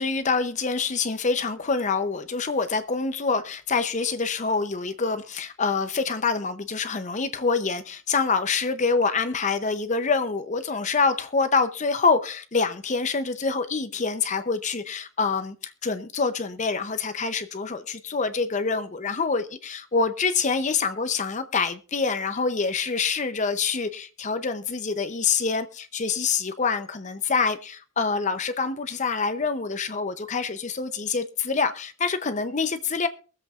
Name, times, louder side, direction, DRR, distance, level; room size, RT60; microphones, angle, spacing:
voice 1, 0.0-33.1, left 4 dB, 35° left, 0.7 m, -26 dB
23.0 x 7.7 x 2.4 m
head